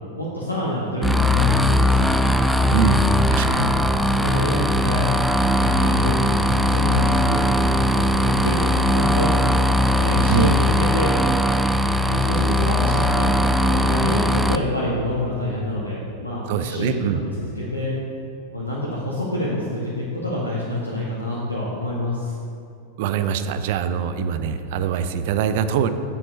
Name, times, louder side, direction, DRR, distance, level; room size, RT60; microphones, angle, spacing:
voice 1, 0.2-2.2 3.2-5.1 5.6-9.3 10.0-11.1 12.1-16.9 17.4-17.9 18.5-22.3, left 1 dB, 85° left, -6 dB, 1.3 m, -27 dB
sound 1, 1.0-14.6, left 1 dB, 5° right, 0.4 m, -19 dB
voice 2, 2.7-3.7 10.3-10.5 16.5-17.2 23.0-25.9, right 8 dB, 50° right, 10 dB, 0.5 m, -23 dB
7.6 x 7.3 x 5.2 m, 2.5 s
figure-of-eight pair, 90°, 0 cm